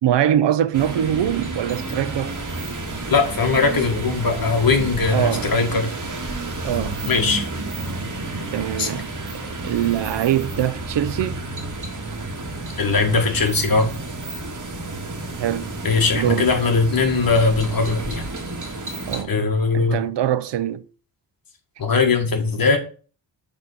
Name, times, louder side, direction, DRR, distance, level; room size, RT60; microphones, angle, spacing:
voice 1, 0.0-2.3 5.1-5.5 6.6-7.0 8.5-9.1 9.6-11.4 15.4-15.7 16.1-16.5 19.1-20.8, right 11 dB, 75° right, 0.6 m, -23 dB
sound 1, 0.7-19.2, right 2 dB, 45° right, 1.8 m, -31 dB
voice 2, 3.1-5.9 7.1-7.5 8.8-8.9 12.8-13.9 15.8-18.2 19.3-20.0 21.8-22.8, left 4 dB, 55° left, 1.7 m, -20 dB
6.9 x 3.5 x 5.6 m
wide cardioid pair, 95°, 43 cm